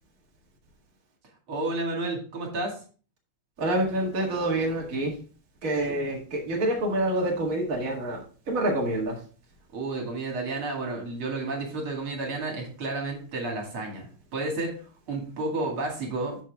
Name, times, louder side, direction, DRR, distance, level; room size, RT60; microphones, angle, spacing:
voice 1, 1.5-2.8 9.7-14.7 15.1-16.4, right 2 dB, 70° right, 1 dB, 3.1 m, -31 dB
voice 2, 3.6-5.1 5.6-9.2, right 1 dB, 40° right, -1 dB, 2.2 m, -27 dB
12.5 x 4.7 x 3.5 m, 0.39 s
omnidirectional pair, 2.4 m